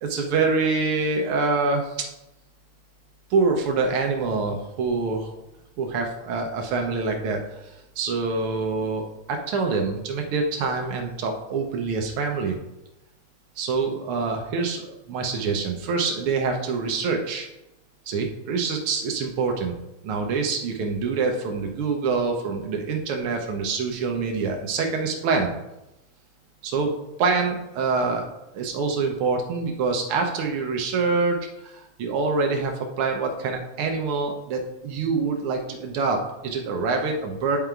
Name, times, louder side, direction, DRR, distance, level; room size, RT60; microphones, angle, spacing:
voice 1, 0.0-2.0 3.3-5.3 5.8-12.6 13.6-17.5 18.1-19.8 20.0-25.5 26.6-26.9 27.2-28.3 28.5-37.6, right 4 dB, 80° right, 3 dB, 1.2 m, -25 dB
9.3 x 3.8 x 4.5 m, 0.93 s
omnidirectional pair, 3.4 m